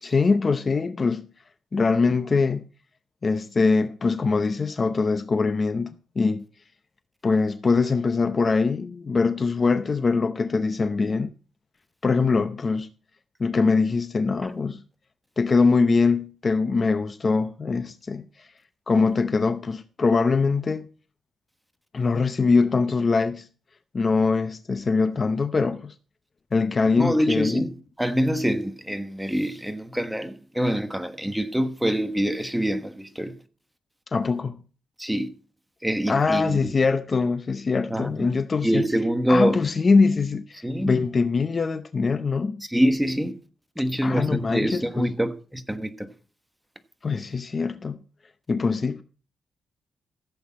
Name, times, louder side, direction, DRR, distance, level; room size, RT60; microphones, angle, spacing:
voice 1, 0.0-1.3 1.7-2.7 3.2-6.4 7.2-11.3 12.0-12.9 13.4-14.8 15.4-18.5 18.9-20.9 21.9-23.5 23.9-25.9 26.5-27.7 34.1-34.6 36.1-38.9 39.3-42.6 44.0-45.1 47.0-48.0 48.5-49.0, left 4 dB, 30° left, 0.7 m, -23 dB
voice 2, 27.0-33.3 35.0-35.3 35.8-36.7 37.9-38.3 38.6-39.6 40.6-41.0 42.7-43.3 43.8-46.1, equal, 5° right, 1.3 m, -25 dB
15.0 x 8.1 x 4.2 m
wide cardioid pair, 140°, 0 cm